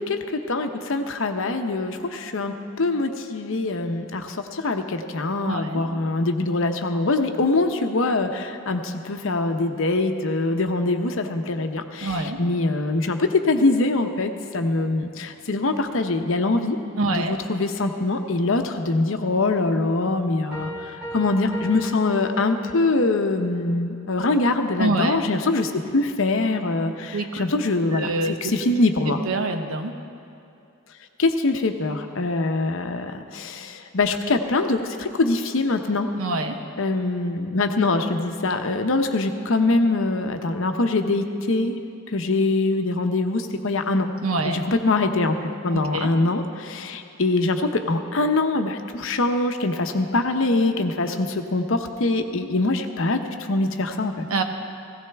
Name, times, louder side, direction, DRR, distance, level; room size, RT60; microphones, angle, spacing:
voice 1, 0.1-16.8 17.1-20.7 21.1-28.1 28.4-29.2 31.2-36.1 36.8-41.8 42.1-44.1 44.4-53.2 53.5-54.2, left 2 dB, 65° left, 6 dB, 0.8 m, -23 dB
voice 2, 5.5-5.8 12.0-12.4 17.0-17.4 24.8-25.2 27.1-27.4 27.9-28.5 29.3-30.0 36.2-36.6 44.2-44.6 45.7-46.1 54.3-54.4, right 2 dB, 75° right, 6 dB, 1.0 m, -25 dB
Piano, 20.5-23.0, equal, 5° right, 3.4 m, -36 dB
16.0 x 16.0 x 3.5 m, 2.6 s
head